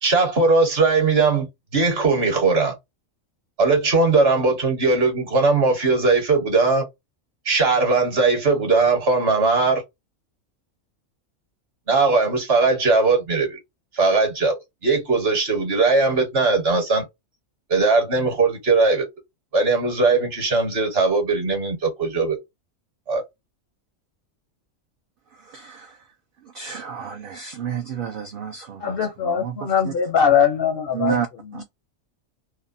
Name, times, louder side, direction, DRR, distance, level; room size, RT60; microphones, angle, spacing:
voice 1, 0.0-2.7 3.6-6.9 7.4-9.8 11.9-13.6 13.9-14.5 14.8-17.0 17.7-19.0 19.5-22.4 23.1-23.2, right 3 dB, 50° right, 1.2 m, -19 dB
voice 2, 25.4-26.0 26.5-28.8 29.4-29.5 29.9-30.0 30.9-31.3, right 8 dB, 65° right, 0.5 m, -29 dB
voice 3, 28.8-31.2 31.5-31.6, left 7 dB, 60° left, 0.6 m, -21 dB
2.7 x 2.2 x 2.5 m
omnidirectional pair, 1.4 m